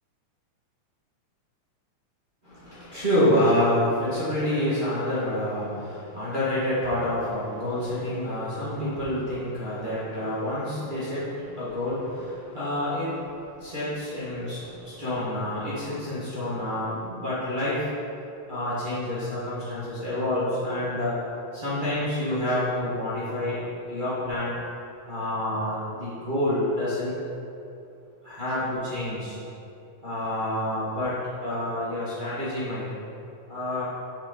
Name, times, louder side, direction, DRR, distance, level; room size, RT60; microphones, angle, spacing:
voice 1, 2.4-17.8 18.5-21.2 21.5-23.6 23.9-24.5 25.1-27.2 28.2-29.4 30.0-31.1 31.4-32.8 33.5-33.8, left 1 dB, 35° right, -12 dB, 0.8 m, -28 dB
6.0 x 5.7 x 3.8 m, 2.6 s
omnidirectional pair, 3.4 m